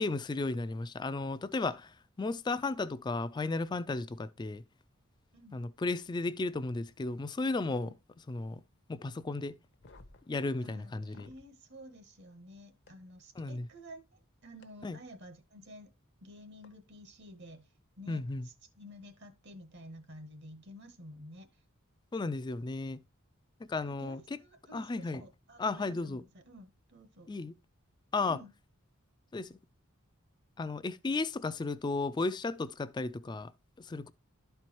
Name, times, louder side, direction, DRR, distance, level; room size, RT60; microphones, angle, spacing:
voice 1, 0.0-1.9 2.2-4.6 5.5-7.9 8.3-8.6 8.9-9.6 10.3-11.3 13.4-13.7 14.8-15.0 18.1-18.5 22.1-23.0 23.7-24.2 24.7-25.2 25.6-26.2 27.3-27.5 28.1-28.4 29.3-29.5 30.6-33.5 33.8-34.1, left 3 dB, 20° left, 0.3 m, -34 dB
sound 1, 9.7-11.5 12.9-13.0 14.6-14.7 16.6-16.7 18.1-18.3, left 2 dB, 55° left, 0.7 m, -58 dB
voice 2, 10.6-15.9 16.2-17.7 18.0-21.5 23.8-27.3 28.3-28.5, equal, 55° right, 1.0 m, -51 dB
11.5 x 4.5 x 2.9 m
head